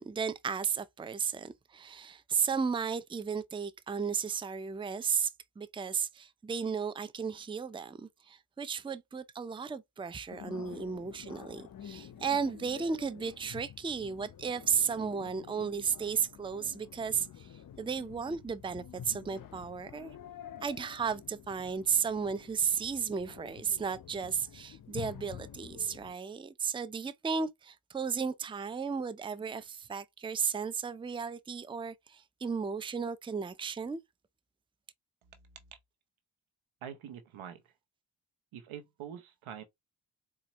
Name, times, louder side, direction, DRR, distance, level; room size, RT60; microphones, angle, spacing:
voice 1, 0.0-5.3 5.6-20.1 20.6-34.0, right 6 dB, 10° right, 0.4 m, -34 dB
sound 1, 10.3-26.2, left 9 dB, 45° left, 0.6 m, -49 dB
voice 2, 36.8-37.6 38.5-39.6, right 9 dB, 90° right, 0.8 m, -44 dB
4.1 x 2.4 x 2.9 m
supercardioid pair, 40°, 47 cm